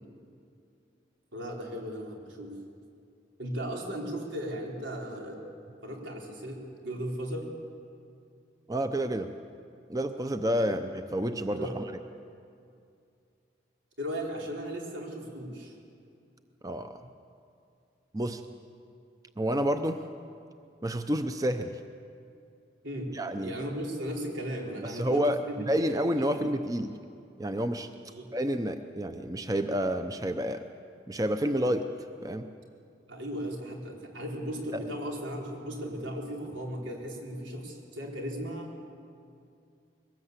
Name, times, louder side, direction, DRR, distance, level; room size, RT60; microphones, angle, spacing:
voice 1, 1.3-2.6 3.4-5.4 5.8-7.5 10.7-10.8 11.5-11.8 14.0-15.7 22.8-23.1 23.4-26.5 28.0-28.3 33.1-38.9, equal, 90° right, -1 dB, 4.5 m, -36 dB
voice 2, 8.7-9.3 9.9-11.8 16.6-17.0 18.1-18.4 19.4-20.0 20.8-21.8 23.1-23.5 24.8-25.4 25.7-26.9 27.4-27.9 28.3-30.7 31.1-31.9 32.2-32.5 34.7-34.8, equal, 20° right, 8 dB, 0.7 m, -29 dB
22.5 x 19.5 x 8.3 m, 2.4 s
head